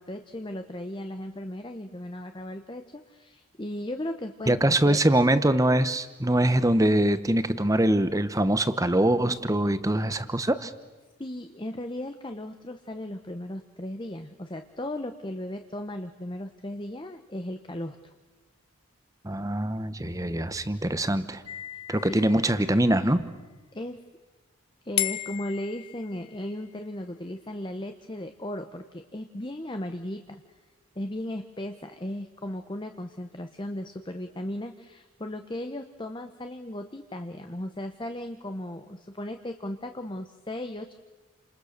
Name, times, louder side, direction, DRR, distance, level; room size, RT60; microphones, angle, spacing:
voice 1, 0.0-5.0 11.2-18.1 22.1-22.2 23.7-24.0 24.8-30.6 31.0-40.9, left 1 dB, 20° left, 6 dB, 0.9 m, -36 dB
voice 2, 4.5-10.7 19.2-21.4 21.9-23.2, right 1 dB, 15° right, 13 dB, 0.9 m, -23 dB
sound 1, 21.5-23.0 25.0-26.6, left 14 dB, 85° left, 1.3 m, -35 dB
30.0 x 27.0 x 6.6 m, 1.2 s
head